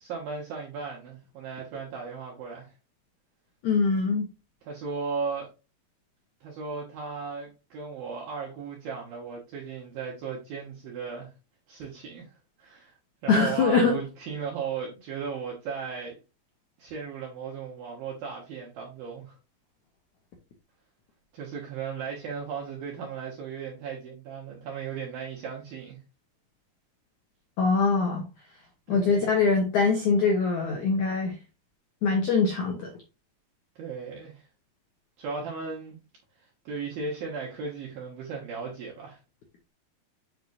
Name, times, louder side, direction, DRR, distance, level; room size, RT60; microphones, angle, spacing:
voice 1, 0.0-2.8 4.6-5.5 6.4-11.3 11.7-12.3 12.6-12.9 13.2-16.1 16.8-19.4 21.3-26.0 28.9-29.3 33.8-34.5 35.2-36.0 36.4-39.2, right 5 dB, 65° right, 2.8 m, -36 dB
voice 2, 3.6-4.3 13.3-14.0 27.6-28.3 28.9-31.4 32.0-32.9, left 4 dB, 75° left, 1.7 m, -23 dB
8.0 x 5.9 x 2.7 m
omnidirectional pair, 5.2 m